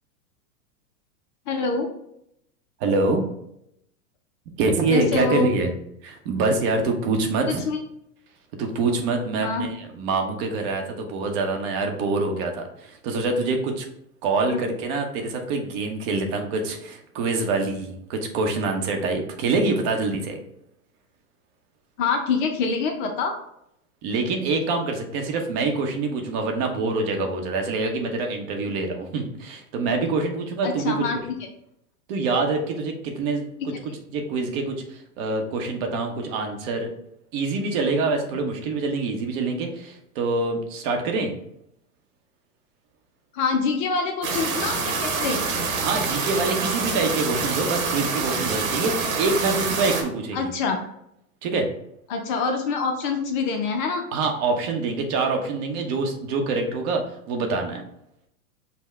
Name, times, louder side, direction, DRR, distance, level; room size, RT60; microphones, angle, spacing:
voice 1, 1.5-1.9 4.9-5.5 7.5-7.8 9.4-9.7 14.5-14.6 22.0-23.3 30.6-31.2 43.3-45.4 50.3-50.8 52.1-54.0, left 4 dB, 35° left, 4 dB, 0.4 m, -25 dB
voice 2, 2.8-3.2 4.6-5.7 6.0-7.6 8.5-13.8 14.2-20.4 24.0-31.0 32.1-36.9 37.3-41.3 45.8-50.5 51.4-51.7 54.1-57.8, right 3 dB, 45° right, 3 dB, 0.8 m, -25 dB
sound 1, 44.2-50.0, right 4 dB, 65° right, 1.1 m, -26 dB
5.7 x 2.1 x 3.2 m, 0.78 s
hypercardioid pair, 120°, 45 cm